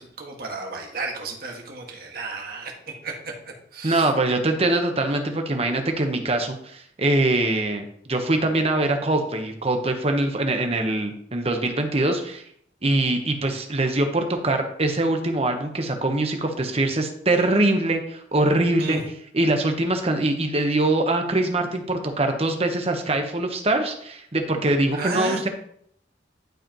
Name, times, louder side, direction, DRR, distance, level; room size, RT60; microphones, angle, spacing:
voice 1, 0.0-2.7 3.0-3.1 3.7-4.1 18.8-19.0 24.9-25.4, right 3 dB, 50° right, 0 dB, 1.7 m, -32 dB
voice 2, 3.8-12.4 12.8-19.0 19.3-25.5, right 2 dB, 30° right, 5 dB, 1.0 m, -23 dB
11.5 x 5.0 x 3.0 m, 0.67 s
head